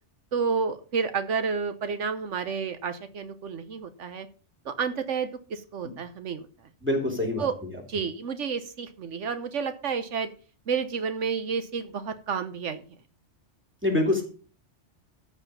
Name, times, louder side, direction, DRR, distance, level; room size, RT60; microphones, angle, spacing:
voice 1, 0.3-4.3 4.6-6.5 7.4-7.5 7.9-10.3 10.7-12.8, right 6 dB, 80° right, 10 dB, 1.3 m, -30 dB
voice 2, 6.8-7.7 13.8-14.2, left 2 dB, 10° right, 0 dB, 3.3 m, -25 dB
14.0 x 5.0 x 7.1 m, 0.40 s
omnidirectional pair, 1.2 m